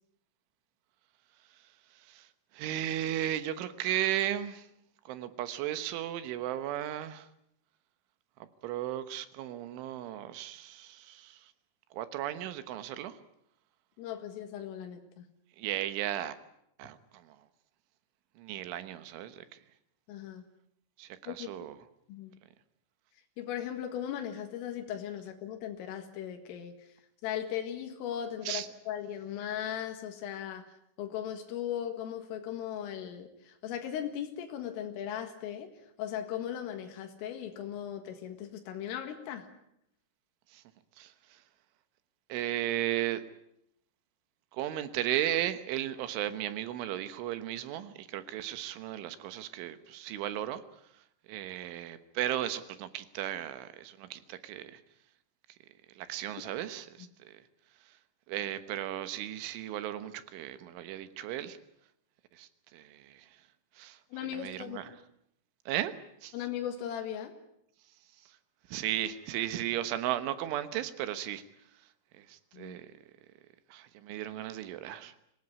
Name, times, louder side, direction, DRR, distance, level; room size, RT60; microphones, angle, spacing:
voice 1, 1.4-4.7 5.1-7.3 8.4-11.5 11.9-13.2 15.6-16.4 16.8-17.5 18.4-19.6 21.0-21.8 28.5-28.7 40.5-40.6 41.0-41.4 42.3-43.3 44.5-54.8 55.9-57.5 57.8-58.0 58.3-61.6 62.3-63.5 63.7-65.0 65.7-66.4 68.1-68.4 68.7-72.9 73.7-75.2, right 12 dB, 75° right, 11 dB, 3.6 m, -36 dB
voice 2, 14.0-15.3 20.1-20.5 21.3-21.5 22.1-22.3 23.4-26.9 27.2-35.7 36.0-39.5 64.1-64.8 66.3-67.3 72.5-72.8, left 10 dB, 90° left, 5 dB, 4.4 m, -38 dB
25.0 x 18.0 x 9.6 m, 0.76 s
omnidirectional pair, 5.7 m